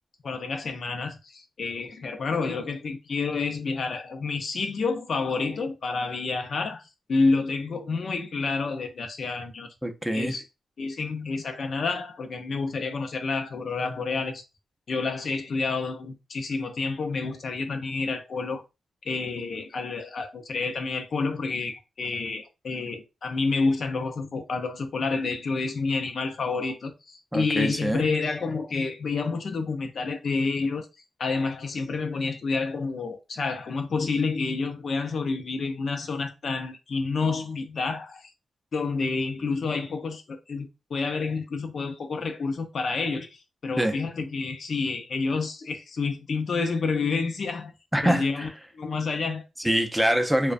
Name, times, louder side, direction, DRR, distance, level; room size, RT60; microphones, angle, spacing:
voice 1, 0.2-6.8 7.1-9.7 10.1-10.4 10.8-14.4 14.9-18.6 19.1-30.9 31.2-38.3 38.7-47.7 48.0-49.4, left 4 dB, 65° left, 0.5 m, -29 dB
voice 2, 9.8-10.3 27.3-28.1 43.8-44.0 47.9-48.5 49.6-50.5, equal, 5° right, 0.4 m, -24 dB
2.4 x 2.1 x 2.4 m
cardioid pair, 70°, 0 cm